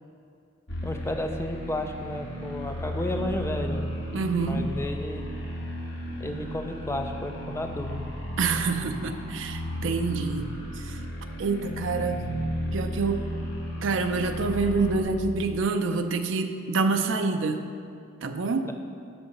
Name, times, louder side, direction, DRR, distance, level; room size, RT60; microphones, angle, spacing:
sound 1, 0.7-15.0, equal, 60° left, 1.2 m, -34 dB
voice 1, 0.8-3.9 4.5-5.2 6.2-8.0 18.7-18.8, left 1 dB, 15° left, 5 dB, 0.4 m, -32 dB
voice 2, 4.1-4.7 8.4-11.0 11.4-12.3 12.7-13.2 13.8-17.6 18.2-18.7, right 4 dB, 65° right, 6 dB, 0.5 m, -27 dB
9.2 x 4.0 x 5.2 m, 2.4 s
head